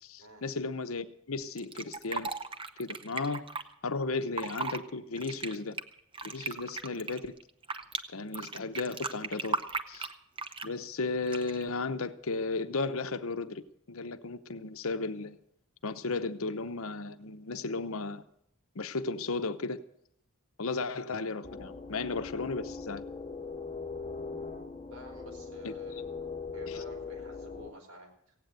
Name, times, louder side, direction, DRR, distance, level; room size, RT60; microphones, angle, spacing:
voice 1, 0.0-2.3 2.8-3.4 3.8-5.8 6.2-7.4 8.1-9.6 9.9-10.1 10.6-13.6 13.9-15.4 15.8-18.2 18.7-19.8 20.6-23.0 25.6-25.7 26.7-26.8, left 3 dB, 70° left, 10 dB, 0.8 m, -34 dB
Fill (with liquid), 1.6-3.6 4.2-4.8 5.2-8.0 8.3-10.8 11.3-11.7, right 4 dB, 25° right, 0.7 m, -36 dB
sound 1, 21.4-27.7, left 4 dB, 25° left, 1.2 m, -40 dB
voice 2, 24.9-26.0 26.5-28.4, right 1 dB, 80° right, 2 dB, 4.4 m, -50 dB
16.5 x 9.1 x 8.0 m, 0.74 s
head